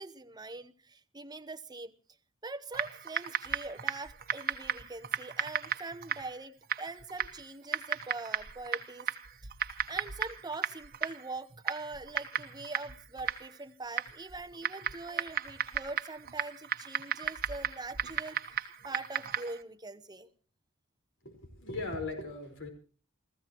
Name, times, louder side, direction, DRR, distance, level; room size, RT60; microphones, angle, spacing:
voice 1, 0.0-1.9 2.4-9.1 9.9-20.3, right 3 dB, 20° right, 12 dB, 0.9 m, -43 dB
Typing, 2.7-19.6, right 8 dB, 45° right, 1.2 m, -36 dB
voice 2, 21.2-22.7, left 3 dB, 60° left, 5 dB, 4.8 m, -38 dB
29.0 x 15.5 x 3.1 m, 0.42 s
head